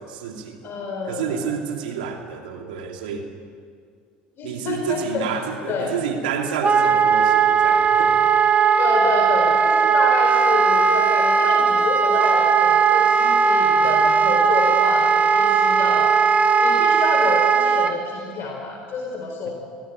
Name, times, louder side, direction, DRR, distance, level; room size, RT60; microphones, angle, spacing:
voice 1, 0.0-0.7 1.1-3.3 4.4-8.2 19.4-19.5, right 6 dB, 80° right, 3 dB, 2.6 m, -29 dB
voice 2, 0.6-1.4 4.4-5.2 5.7-5.9 8.8-16.2 16.6-19.5, left 4 dB, 50° left, 0 dB, 4.4 m, -28 dB
Wind instrument woodwind instrument, 6.6-17.9, right 6 dB, 30° right, 1.2 m, -17 dB
21.5 x 16.0 x 8.8 m, 2.1 s
hypercardioid pair, 80°, 5 cm